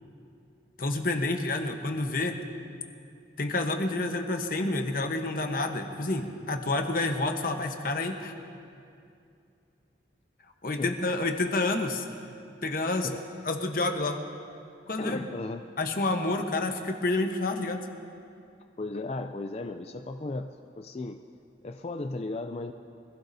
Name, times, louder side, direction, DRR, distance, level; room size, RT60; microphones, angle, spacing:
voice 1, 0.8-2.4 3.4-8.3 10.6-12.0 12.6-13.1 13.4-14.2 14.9-15.2 15.8-17.9, left 2 dB, 50° left, 5 dB, 1.0 m, -29 dB
voice 2, 15.0-15.6 18.8-21.2 21.6-22.7, left 2 dB, 35° left, 6 dB, 0.4 m, -35 dB
24.5 x 16.0 x 2.7 m, 2.5 s
head